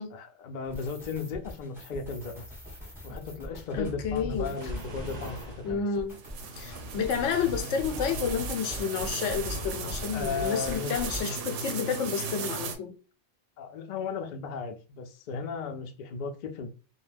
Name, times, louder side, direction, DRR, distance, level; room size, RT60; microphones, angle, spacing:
voice 1, 0.1-2.5 3.0-5.9 10.1-11.1 13.6-16.7, left 5 dB, 60° left, 0.5 m, -36 dB
sound 1, 0.6-11.6, equal, ahead, 0.9 m, -41 dB
voice 2, 3.7-4.6 5.6-6.2 6.5-12.9, left 6 dB, 90° left, 0.9 m, -30 dB
Waves surf, 4.3-5.8, right 1 dB, 50° right, 0.5 m, -42 dB
sound 2, 6.1-12.8, right 3 dB, 85° right, 0.9 m, -36 dB
2.3 x 2.1 x 3.2 m
omnidirectional pair, 1.2 m